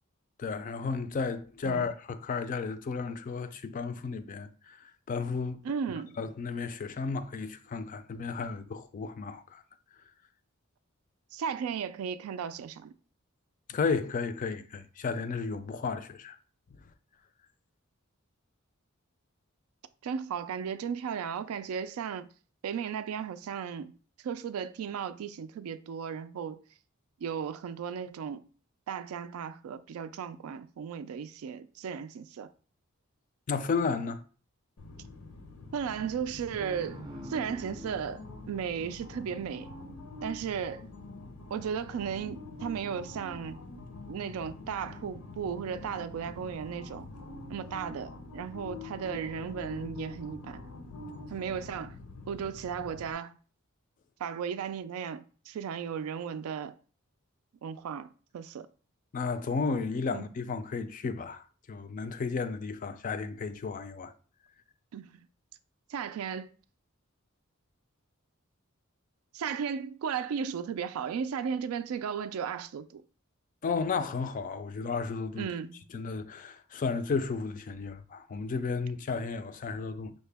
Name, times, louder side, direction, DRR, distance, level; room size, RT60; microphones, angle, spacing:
voice 1, 0.4-4.8 5.1-5.6 6.2-9.6 13.7-16.4 33.5-34.2 59.1-64.1 73.6-75.5 75.9-80.1, left 4 dB, 40° left, 0.3 m, -33 dB
voice 2, 5.6-6.2 11.3-12.9 20.0-22.3 22.6-24.0 24.2-26.6 27.2-28.5 28.9-32.5 35.7-37.0 37.3-39.7 40.2-40.8 41.5-43.6 44.1-47.1 47.5-50.6 51.3-51.9 52.3-53.4 54.2-56.7 57.6-58.1 58.3-58.7 60.1-60.2 64.9-65.2 65.9-66.6 69.3-73.0 75.4-75.8, right 7 dB, 85° right, 0.3 m, -35 dB
sound 1, 34.8-53.1, left 3 dB, 85° left, 0.6 m, -45 dB
sound 2, 36.5-39.7, right 1 dB, 20° right, 0.5 m, -46 dB
5.6 x 2.1 x 3.3 m
head